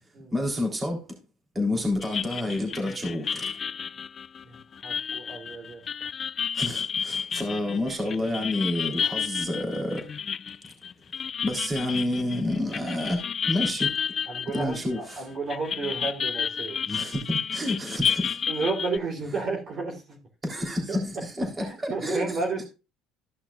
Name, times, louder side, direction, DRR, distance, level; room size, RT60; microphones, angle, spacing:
voice 1, 0.3-1.0 1.5-3.5 6.5-10.1 11.4-13.2 13.5-13.9 14.5-15.3 16.9-18.4 20.4-22.4, left 1 dB, 20° right, 3.7 m, -29 dB
sound 1, 2.0-15.2 15.5-19.0, left 7 dB, 35° left, 0.3 m, -31 dB
voice 2, 4.8-5.8 14.3-16.8 18.5-20.2 20.9-21.0 21.6-22.6, right 3 dB, 40° right, 3.3 m, -32 dB
15.0 x 5.8 x 2.5 m
supercardioid pair, 100°, 0 cm